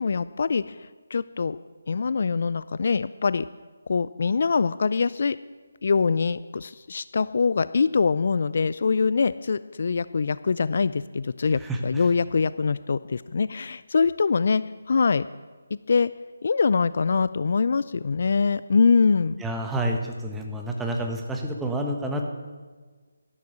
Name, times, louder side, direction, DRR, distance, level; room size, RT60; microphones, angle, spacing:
voice 1, 0.0-1.6 1.9-3.5 3.9-5.4 5.8-15.2 15.9-16.1 16.4-19.4, left 5 dB, 50° left, 16 dB, 0.4 m, -23 dB
voice 2, 11.6-12.1 19.4-22.2, right 1 dB, 5° right, 2 dB, 1.3 m, -29 dB
13.0 x 11.5 x 7.0 m, 1.4 s
figure-of-eight pair, 150°, 0 cm